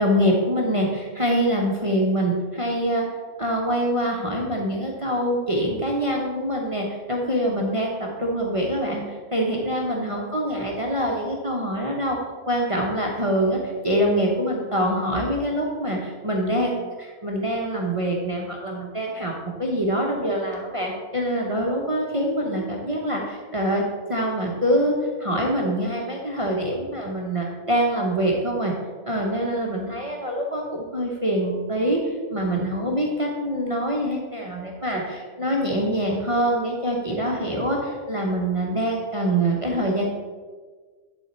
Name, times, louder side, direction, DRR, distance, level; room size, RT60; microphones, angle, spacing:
voice 1, 0.0-3.0 3.4-12.2 12.5-19.3 19.6-23.8 24.1-24.9 25.2-28.7 29.1-40.1, equal, 30° right, -1 dB, 0.7 m, -25 dB
11.0 x 4.1 x 4.3 m, 1.5 s
omnidirectional pair, 1.6 m